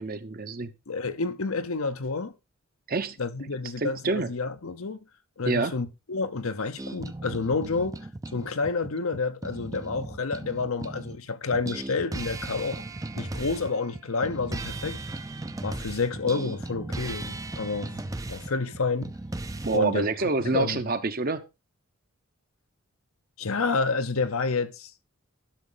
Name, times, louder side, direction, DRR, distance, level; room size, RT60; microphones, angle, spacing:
voice 1, 0.0-0.7 2.9-3.2 3.8-4.3 5.4-5.7 19.6-21.4, right 3 dB, 40° right, 0.8 m, -27 dB
voice 2, 0.9-2.3 3.2-5.0 5.4-8.0 8.3-12.8 13.1-15.2 15.6-19.2 19.7-20.1 20.4-20.8 23.4-24.9, left 4 dB, 75° left, 0.9 m, -29 dB
sound 1, 6.8-11.2 11.5-19.8, right 2 dB, 15° right, 0.5 m, -37 dB
11.5 x 6.2 x 3.9 m
head